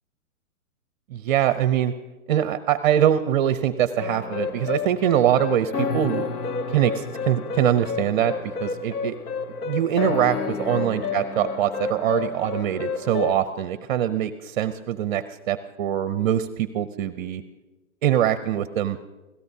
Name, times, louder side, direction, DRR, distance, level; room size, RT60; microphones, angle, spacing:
voice 1, 1.1-1.9 2.3-6.3 6.7-8.3 8.6-9.2 9.6-17.4 18.0-19.0, right 11 dB, 35° right, 12 dB, 0.6 m, -23 dB
sound 1, 4.0-13.4, left 5 dB, 90° left, 1.0 m, -30 dB
25.5 x 17.0 x 2.7 m, 1.1 s
hypercardioid pair, 140°, 44 cm